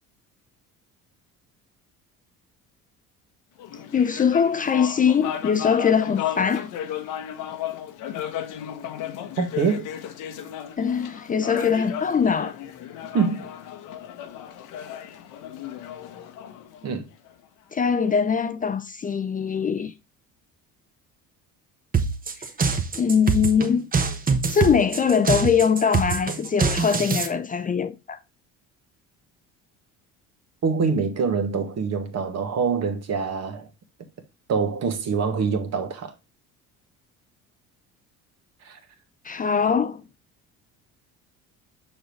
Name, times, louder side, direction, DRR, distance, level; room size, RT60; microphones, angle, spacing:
sound 1, 3.6-17.3, left 10 dB, 75° left, 1.0 m, -35 dB
voice 1, 3.9-6.7 10.8-12.6 17.7-19.9 23.0-23.9 24.5-28.2 39.2-40.0, left 6 dB, 25° left, 0.5 m, -22 dB
voice 2, 9.4-9.9 13.1-13.5 16.8-17.0 30.6-33.7 34.5-36.1 38.6-38.8, right 5 dB, 55° right, 1.6 m, -25 dB
sound 2, 21.9-27.3, right 5 dB, 25° right, 1.0 m, -24 dB
6.2 x 5.4 x 3.1 m
cardioid pair, 95°, 31 cm